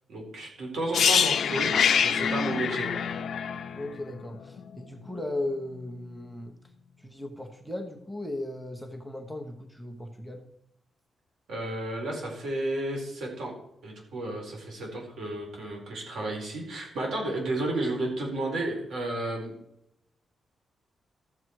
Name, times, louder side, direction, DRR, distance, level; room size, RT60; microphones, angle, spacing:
voice 1, 0.1-3.0 11.5-13.5 13.8-19.5, right 1 dB, 85° right, 0 dB, 4.4 m, -32 dB
sound 1, 0.9-4.8 5.1-5.3, left 7 dB, 60° left, 0.8 m, -25 dB
voice 2, 3.7-6.5 7.0-10.4, left 1 dB, ahead, 5 dB, 1.1 m, -36 dB
14.0 x 7.4 x 4.7 m, 0.78 s
wide cardioid pair, 155°, 0 cm